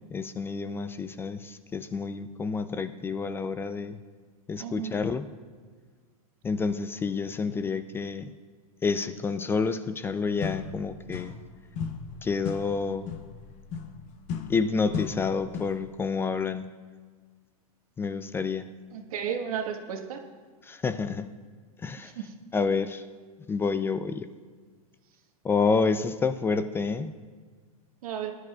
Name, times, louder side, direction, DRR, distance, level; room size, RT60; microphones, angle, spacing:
voice 1, 0.1-4.0 4.5-5.3 6.4-8.3 8.8-11.3 12.2-13.1 14.5-16.7 18.0-18.7 20.6-21.3 21.8-22.1 22.5-23.0 23.5-24.3 25.4-27.1, left 4 dB, 10° left, 12 dB, 0.3 m, -29 dB
voice 2, 4.6-4.9 18.9-20.2 22.0-22.3 28.0-28.3, right 8 dB, 70° right, 4 dB, 1.5 m, -33 dB
sound 1, 10.0-10.1 10.4-11.5 11.8-15.9, left 6 dB, 40° left, 0.9 m, -37 dB
20.5 x 11.0 x 2.4 m, 1.5 s
hypercardioid pair, 125°, 19 cm